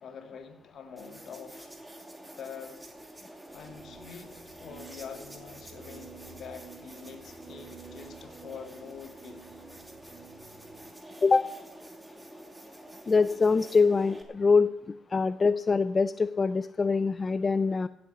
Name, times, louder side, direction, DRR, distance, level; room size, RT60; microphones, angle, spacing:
voice 1, 0.0-1.7 2.4-2.8 3.5-9.5 12.0-12.1, left 6 dB, 65° left, 6 dB, 1.8 m, -45 dB
sound 1, 1.0-14.2, right 1 dB, 10° right, 2.5 m, -48 dB
sound 2, 3.5-10.9, right 7 dB, 60° right, 3.3 m, -52 dB
voice 2, 13.1-14.7 15.1-17.9, left 4 dB, 30° left, 14 dB, 0.4 m, -24 dB
15.5 x 8.5 x 7.2 m, 0.87 s
cardioid pair, 90°, 0 cm